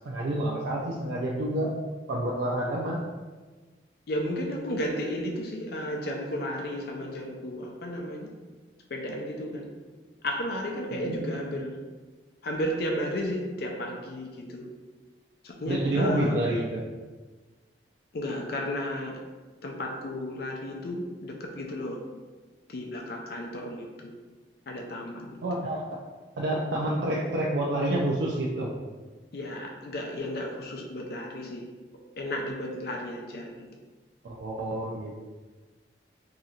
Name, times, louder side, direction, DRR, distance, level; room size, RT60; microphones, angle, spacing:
voice 1, 0.0-1.7 2.1-3.0 11.0-11.4 15.7-16.8 25.4-26.0 26.4-28.7 34.2-35.3, right 1 dB, 75° right, -3 dB, 0.4 m, -28 dB
voice 2, 4.1-8.3 8.9-9.7 10.2-11.8 12.4-14.6 15.4-16.4 18.1-19.2 19.6-22.0 22.7-24.1 24.7-25.4 29.3-31.7 32.2-33.5, equal, 60° left, 1 dB, 0.5 m, -33 dB
2.8 x 2.4 x 4.1 m, 1.3 s
head